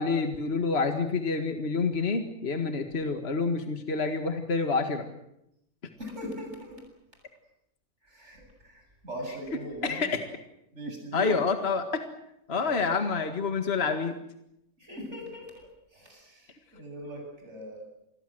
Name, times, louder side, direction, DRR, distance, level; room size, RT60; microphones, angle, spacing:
voice 1, 0.0-5.1 9.8-10.2 11.1-12.0 12.5-14.1, left 4 dB, 45° left, 6 dB, 2.1 m, -28 dB
voice 2, 6.0-6.8 8.1-10.1 10.7-11.4 12.5-12.8 14.8-17.8, equal, 50° right, 2 dB, 8.4 m, -40 dB
28.5 x 21.5 x 7.9 m, 0.82 s
omnidirectional pair, 1.6 m